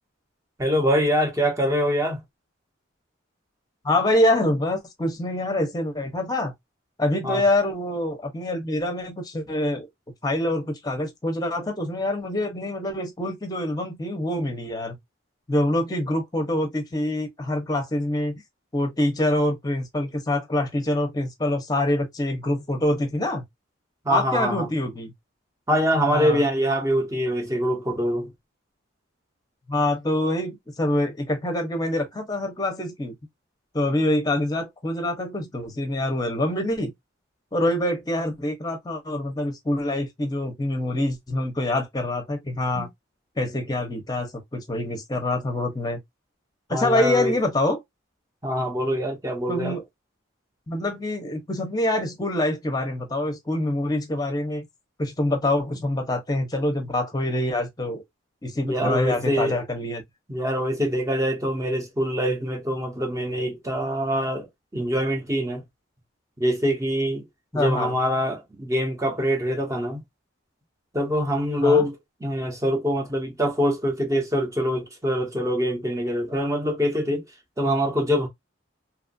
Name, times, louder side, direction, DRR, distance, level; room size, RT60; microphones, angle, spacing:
voice 1, 0.6-2.2 7.2-7.4 24.0-24.7 25.7-28.3 42.7-42.9 46.7-47.3 48.4-49.8 58.6-59.6 60.3-64.5 64.7-65.6 66.4-67.2 67.5-70.0 70.9-72.0 72.2-77.3 77.6-78.3, equal, 15° right, 0.7 m, -24 dB
voice 2, 3.8-6.5 7.0-9.9 10.2-14.9 15.5-18.4 18.7-23.4 24.1-25.1 26.1-26.4 29.7-33.1 33.7-36.9 37.5-42.9 43.4-46.0 46.7-47.8 49.5-49.8 50.7-54.7 55.0-58.0 58.4-60.0 67.5-68.0 71.6-71.9, left 1 dB, 20° left, 0.7 m, -25 dB
2.9 x 2.4 x 2.5 m
head